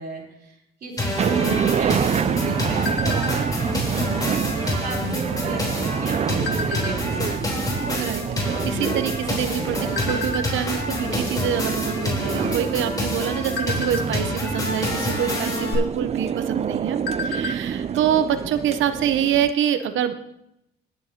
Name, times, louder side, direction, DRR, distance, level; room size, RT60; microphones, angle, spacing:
voice 1, 0.0-3.7 4.1-7.7, right 4 dB, 50° right, -1 dB, 3.7 m, -35 dB
sound 1, 1.0-15.7, left 2 dB, 20° left, 3.7 m, -28 dB
sound 2, 1.2-19.5, right 8 dB, 35° right, 0.3 m, -27 dB
sound 3, 1.8-3.7 4.1-4.4 4.7-5.1 5.8-7.3 7.9-8.0 8.2-9.5 10.0-10.5 11.0-11.2 11.5-11.7 12.2-12.7 13.2-14.6 15.6-15.8 16.2-16.3 16.7-17.7 18.0-18.1 18.5-18.6, left 3 dB, 60° left, 1.2 m, -31 dB
voice 2, 3.9-4.3 8.0-20.2, right 9 dB, 75° right, 11 dB, 0.8 m, -26 dB
19.5 x 7.6 x 2.9 m, 0.81 s
cardioid pair, 90°, 20 cm